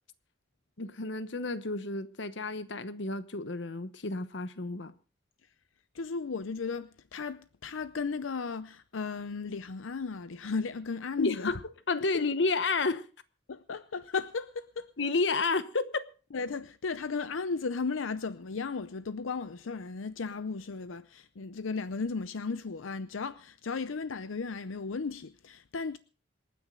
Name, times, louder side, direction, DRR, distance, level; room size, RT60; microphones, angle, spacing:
voice 1, 0.8-4.9 11.2-11.6 11.9-13.1 15.0-16.1, left 3 dB, 65° left, 1.1 m, -31 dB
voice 2, 5.9-11.5 12.0-12.1 13.5-14.9 16.3-26.0, left 4 dB, 85° left, 0.6 m, -35 dB
27.0 x 9.5 x 3.8 m
head